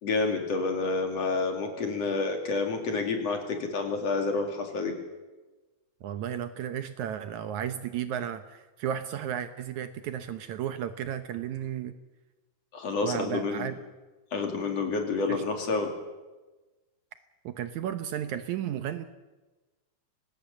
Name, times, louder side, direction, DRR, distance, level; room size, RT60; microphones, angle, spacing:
voice 1, 0.0-4.9 12.7-13.7 14.3-15.9, left 3 dB, 50° left, 4 dB, 3.5 m, -29 dB
voice 2, 6.0-12.0 13.0-13.8 15.3-15.4 17.5-19.0, right 9 dB, 70° right, 10 dB, 2.1 m, -34 dB
24.0 x 19.0 x 7.2 m, 1.2 s
omnidirectional pair, 3.9 m